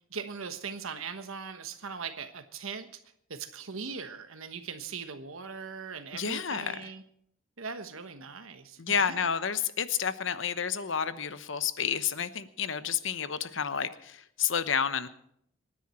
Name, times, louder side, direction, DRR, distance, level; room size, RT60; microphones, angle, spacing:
voice 1, 0.1-2.9 3.3-7.0 7.6-9.3, right 5 dB, 85° right, 8 dB, 1.2 m, -40 dB
voice 2, 6.1-6.9 8.8-15.1, left 7 dB, 65° left, 13 dB, 1.0 m, -30 dB
27.0 x 10.0 x 4.4 m, 0.70 s
head